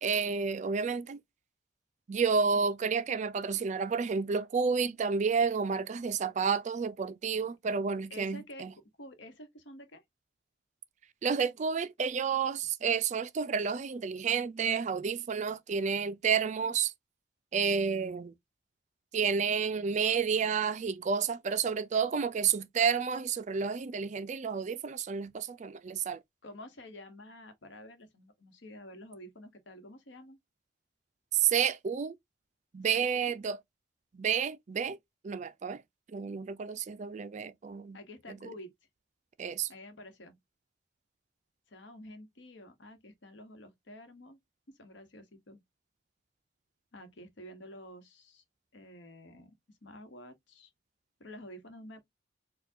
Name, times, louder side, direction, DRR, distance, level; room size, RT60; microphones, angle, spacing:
voice 1, 0.0-1.2 2.1-8.7 11.2-16.9 17.5-18.3 19.1-26.2 31.3-32.1 32.7-33.6 34.1-35.0 35.2-35.8 36.1-38.0 38.3-38.4 39.4-39.7, right 6 dB, 40° right, 0.4 m, -30 dB
voice 2, 8.1-10.0 26.4-30.4 32.9-33.3 37.9-38.7 39.7-40.4 41.7-44.4 44.7-45.6 46.9-48.4 48.7-50.7 51.2-52.0, left 1 dB, 80° left, 1.1 m, -49 dB
4.4 x 2.3 x 2.7 m
head